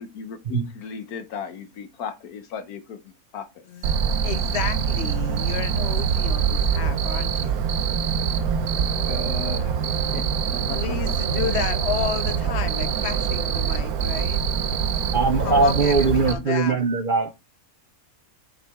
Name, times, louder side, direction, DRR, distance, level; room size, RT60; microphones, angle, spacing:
voice 1, 0.0-3.0 3.3-3.5 9.0-10.2 10.5-11.1 11.5-11.6 15.4-15.7, left 6 dB, 85° left, 1.4 m, -35 dB
Cricket, 3.8-16.3, right 7 dB, 80° right, 1.2 m, -24 dB
voice 2, 4.2-7.6 9.0-9.1 10.7-14.4 15.4-16.8, left 7 dB, 60° left, 0.7 m, -32 dB
voice 3, 15.1-17.3, right 3 dB, 50° right, 0.6 m, -20 dB
6.6 x 5.9 x 3.5 m
omnidirectional pair, 1.5 m